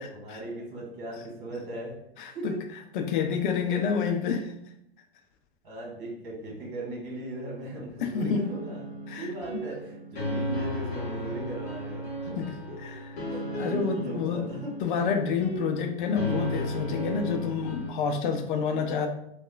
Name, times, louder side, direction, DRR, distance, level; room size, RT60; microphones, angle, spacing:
voice 1, 0.0-2.0 2.3-2.6 3.7-3.8 5.6-8.8 9.1-12.4 12.7-13.0 13.3-14.7, right 1 dB, 55° right, -3 dB, 1.4 m, -38 dB
voice 2, 2.2-2.5 2.9-4.5 8.0-8.5 9.1-9.6 12.4-12.5 12.8-13.0 13.6-14.4 14.8-19.1, left 6 dB, 50° left, 5 dB, 0.4 m, -28 dB
sound 1, 8.3-17.9, equal, 80° left, 0.9 m, -35 dB
2.9 x 2.2 x 2.2 m, 0.76 s
hypercardioid pair, 135°, 32 cm